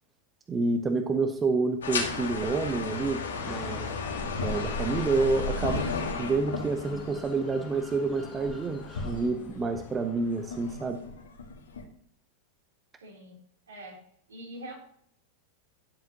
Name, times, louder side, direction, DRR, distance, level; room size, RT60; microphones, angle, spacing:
voice 1, 0.5-3.9 4.4-5.8 6.2-11.0, right 3 dB, 20° right, 6 dB, 0.7 m, -28 dB
sound 1, 1.8-9.8 10.3-11.8, left 4 dB, 65° left, 1.7 m, -34 dB
sound 2, 3.3-9.3, left 1 dB, 10° left, 2.3 m, -48 dB
sound 3, 3.5-10.8, left 6 dB, 30° left, 1.1 m, -46 dB
voice 2, 13.0-13.4 13.7-14.0 14.3-14.8, right 1 dB, 70° right, -2 dB, 3.5 m, -43 dB
10.5 x 7.4 x 2.9 m, 0.66 s
figure-of-eight pair, 90°, 0 cm